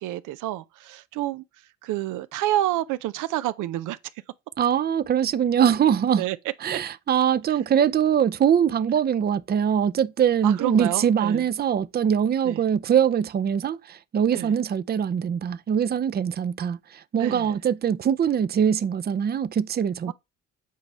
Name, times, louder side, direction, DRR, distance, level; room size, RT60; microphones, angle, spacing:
voice 1, 0.0-1.4 1.8-4.0 6.2-6.4 6.7-6.8 10.4-11.4 12.4-12.6 14.3-14.5 17.2-17.5 20.1-20.2, right 14 dB, 90° right, 0.6 m, -28 dB
voice 2, 4.6-6.2 6.6-20.1, right 8 dB, 35° right, 0.5 m, -22 dB
8.4 x 3.2 x 5.4 m
cardioid pair, 90°, 30 cm